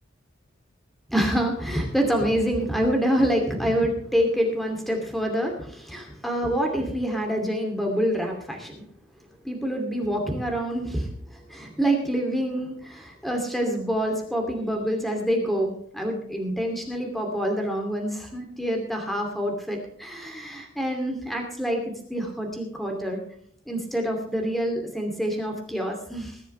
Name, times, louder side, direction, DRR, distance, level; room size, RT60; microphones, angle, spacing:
voice 1, 1.1-8.8 9.4-23.2 23.7-26.4, equal, ahead, 2 dB, 2.6 m, -26 dB
20.0 x 12.0 x 3.3 m, 0.65 s
head